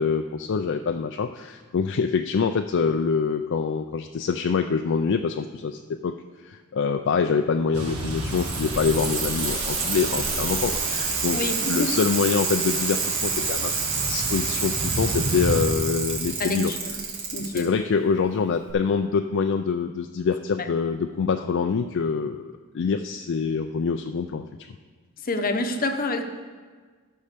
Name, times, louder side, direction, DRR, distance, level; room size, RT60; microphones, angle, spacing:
voice 1, 0.0-6.1 6.5-13.7 14.0-16.7 17.4-24.4, left 5 dB, 55° left, 6 dB, 0.4 m, -25 dB
sound 1, 7.7-15.6, right 1 dB, 80° right, 1.5 m, -32 dB
Bicycle, 8.0-17.6 18.7-18.8, right 4 dB, 60° right, 2.3 m, -28 dB
voice 2, 11.3-11.9 16.4-17.6 20.6-20.7 25.2-26.3, left 2 dB, 40° left, 7 dB, 0.8 m, -28 dB
12.0 x 5.5 x 6.7 m, 1.5 s
head